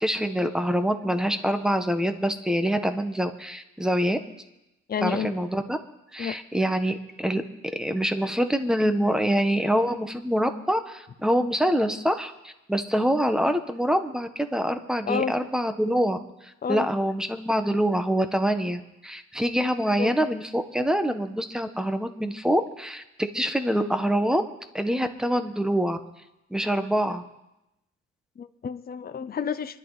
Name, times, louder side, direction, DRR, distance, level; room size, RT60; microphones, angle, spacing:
voice 1, 0.0-4.2 5.0-5.8 6.1-7.4 7.7-16.2 16.7-23.0 23.3-24.4 24.7-26.0 26.5-27.2, equal, ahead, 8 dB, 1.5 m, -25 dB
voice 2, 4.9-5.3 6.2-6.4 15.1-15.4 16.6-16.9 20.0-20.1 28.4-29.8, left 7 dB, 30° left, 10 dB, 0.7 m, -30 dB
26.0 x 11.5 x 4.2 m, 0.90 s
cardioid pair, 90°, 30 cm